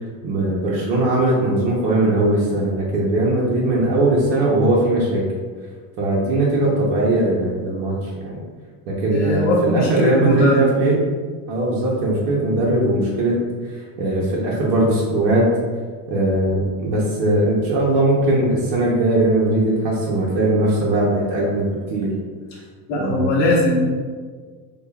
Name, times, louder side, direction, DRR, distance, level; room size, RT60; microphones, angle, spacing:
voice 1, 0.2-5.2 6.0-8.4 8.9-11.1 11.5-13.3 14.0-15.5 16.1-22.1 22.9-23.5, right 2 dB, 70° right, -5 dB, 0.9 m, -19 dB
voice 2, 9.1-10.7 22.9-23.9, left 1 dB, 65° left, -6 dB, 1.0 m, -19 dB
5.0 x 2.3 x 2.3 m, 1.5 s
cardioid pair, 155°, 40 cm